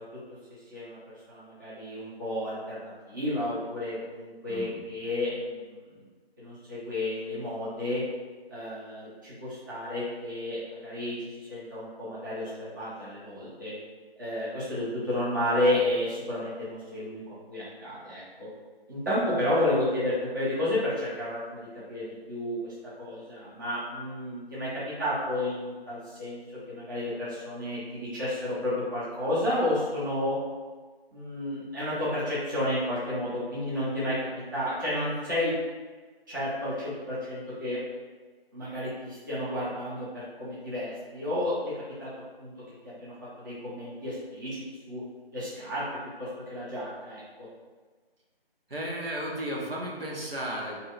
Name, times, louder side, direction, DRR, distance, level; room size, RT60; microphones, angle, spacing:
voice 1, 0.7-5.9 6.4-8.0 8.5-13.7 14.2-18.5 18.9-26.4 26.7-30.4 31.1-35.5 36.3-37.8 38.5-42.1 42.4-42.5 42.8-45.0 45.3-45.8 46.2-47.2, left 1 dB, 20° right, -11 dB, 0.8 m, -31 dB
voice 2, 48.7-50.8, right 1 dB, 65° right, -3 dB, 1.1 m, -34 dB
3.1 x 2.7 x 4.1 m, 1.4 s
figure-of-eight pair, 160°, 31 cm